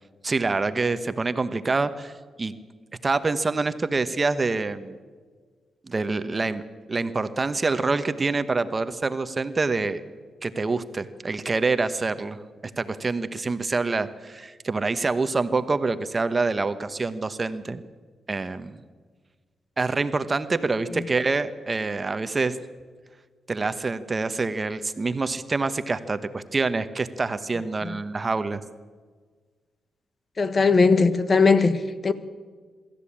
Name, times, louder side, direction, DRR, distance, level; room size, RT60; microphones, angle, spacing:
voice 1, 0.2-2.1 2.4-2.5 3.0-5.0 5.8-6.6 6.9-10.0 10.4-12.4 12.8-17.8 18.3-18.8 19.8-22.6 23.5-28.6, right 3 dB, 30° right, 1.1 m, -26 dB
voice 2, 30.4-32.1, left 4 dB, 40° left, 1.3 m, -19 dB
24.0 x 13.5 x 8.8 m
cardioid pair, 85°, 0 cm